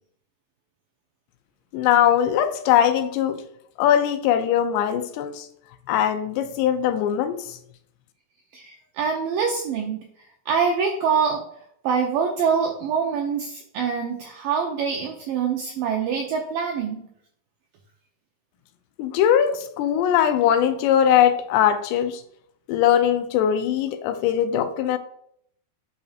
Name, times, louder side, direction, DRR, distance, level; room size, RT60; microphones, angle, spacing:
voice 1, 1.7-3.4 3.8-5.5 5.9-7.6 19.0-22.2 22.7-25.0, left 10 dB, 85° left, 2.7 m, -21 dB
voice 2, 8.5-10.0 10.5-11.4 11.8-17.0, right 6 dB, 80° right, 2.0 m, -25 dB
8.4 x 5.5 x 2.4 m
omnidirectional pair, 4.9 m